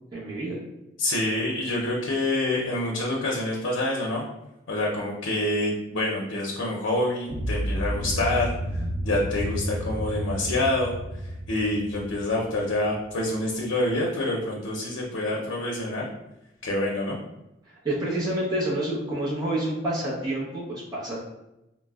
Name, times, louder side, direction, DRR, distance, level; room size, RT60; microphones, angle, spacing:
voice 1, 0.1-0.6 17.7-21.2, right 1 dB, 20° right, -8 dB, 0.7 m, -28 dB
voice 2, 1.0-4.2 4.7-11.0 11.5-16.1 16.6-17.2, left 1 dB, 90° left, -1 dB, 0.5 m, -27 dB
sound 1, 7.3-13.3, right 1 dB, 60° right, 0.5 m, -31 dB
4.0 x 2.0 x 2.3 m, 0.90 s
head